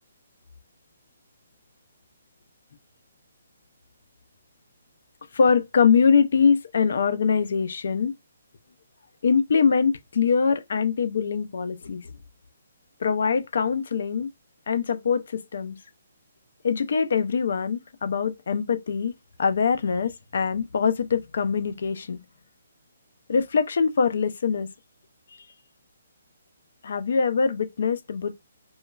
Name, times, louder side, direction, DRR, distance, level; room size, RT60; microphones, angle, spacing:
voice 1, 5.3-8.1 9.2-12.1 13.0-14.3 14.7-15.8 16.6-19.1 19.4-22.2 23.3-24.7 26.8-28.3, left 6 dB, 50° left, 0.4 m, -23 dB
3.0 x 2.3 x 2.2 m
hypercardioid pair, 175°, 0 cm